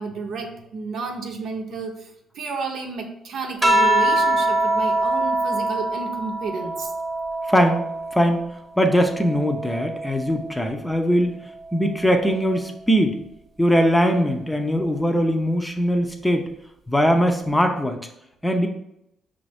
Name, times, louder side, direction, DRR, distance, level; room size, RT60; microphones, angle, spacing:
voice 1, 0.0-6.9, right 4 dB, 70° right, 3 dB, 0.7 m, -31 dB
sound 1, 3.6-8.4 8.9-10.6 11.8-12.3, right 1 dB, 20° right, 1.1 m, -24 dB
voice 2, 7.5-7.8 8.1-8.4 8.8-11.3 11.7-13.2 13.6-16.4 16.9-18.0 18.4-18.7, equal, 10° left, 4 dB, 0.6 m, -20 dB
5.4 x 2.6 x 3.4 m, 0.79 s
cardioid pair, 90°, 0 cm